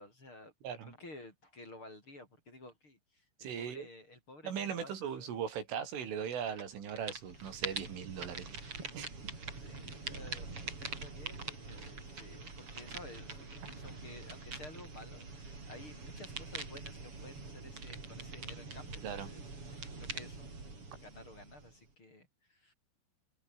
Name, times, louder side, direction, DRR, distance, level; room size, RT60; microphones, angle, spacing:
voice 1, 0.0-0.5 0.8-5.3 7.4-7.5 9.5-10.5 10.8-22.7, left 2 dB, 25° left, 7.8 m, -53 dB
voice 2, 0.6-1.0 3.4-3.9 4.4-8.6 8.9-9.3 19.0-19.3, right 8 dB, 90° right, 6.7 m, -39 dB
sound 1, 6.3-6.6 6.9-21.9, right 3 dB, 30° right, 6.0 m, -44 dB
omnidirectional pair, 5.5 m